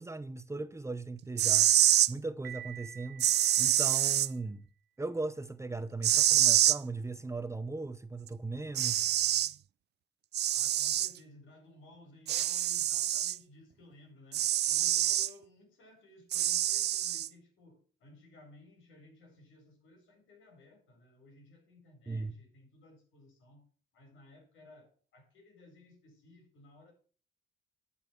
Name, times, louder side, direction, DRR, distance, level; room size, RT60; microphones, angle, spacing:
voice 1, 0.0-1.7 2.1-3.3 3.6-4.6 5.0-9.1 22.1-22.3, right 3 dB, 15° right, 0.7 m, -38 dB
sound 1, 1.2-2.1 3.2-4.3 6.0-6.8 8.3-8.4 8.7-9.5 10.3-11.1 12.3-13.4 14.3-15.3 16.3-17.3, right 12 dB, 60° right, 0.4 m, -26 dB
Piano, 2.4-4.4, right 12 dB, 85° right, 0.8 m, -49 dB
voice 2, 10.5-23.6 23.9-26.9, left 2 dB, 80° left, 5.1 m, -58 dB
10.5 x 5.6 x 7.2 m
cardioid pair, 90°, 20 cm